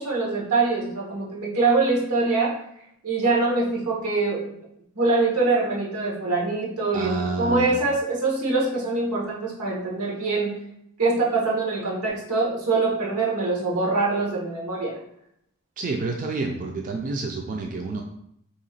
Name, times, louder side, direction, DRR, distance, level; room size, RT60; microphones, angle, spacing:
voice 1, 0.0-2.5 3.0-4.5 5.0-10.6 11.0-14.9, right 3 dB, 90° right, -4 dB, 1.2 m, -24 dB
voice 2, 6.9-7.7 15.8-18.0, right 3 dB, 35° right, 1 dB, 0.3 m, -29 dB
2.9 x 2.8 x 4.0 m, 0.74 s
head